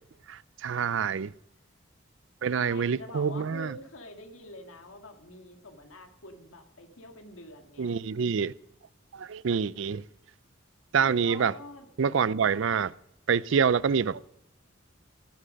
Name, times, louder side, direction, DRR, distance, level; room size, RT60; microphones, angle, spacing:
voice 1, 0.3-1.3 2.4-3.7 7.8-8.5 9.1-10.0 10.9-11.5 12.0-12.9 13.3-14.2, right 6 dB, 65° right, 0.4 m, -26 dB
voice 2, 2.5-8.0 11.0-11.9, left 2 dB, 85° left, 1.9 m, -46 dB
17.0 x 10.0 x 5.2 m
head